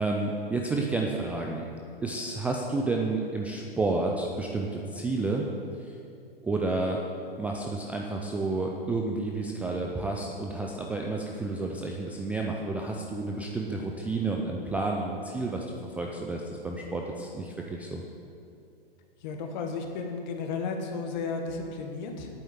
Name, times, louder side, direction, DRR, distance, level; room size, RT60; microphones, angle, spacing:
voice 1, 0.0-1.6 2.0-5.4 5.8-6.0 6.4-7.0 7.4-18.0, right 3 dB, 5° right, 0 dB, 0.3 m, -30 dB
voice 2, 19.2-22.3, left 4 dB, 50° left, 4 dB, 1.7 m, -33 dB
8.7 x 7.9 x 7.2 m, 2.6 s
hypercardioid pair, 120°, 30 cm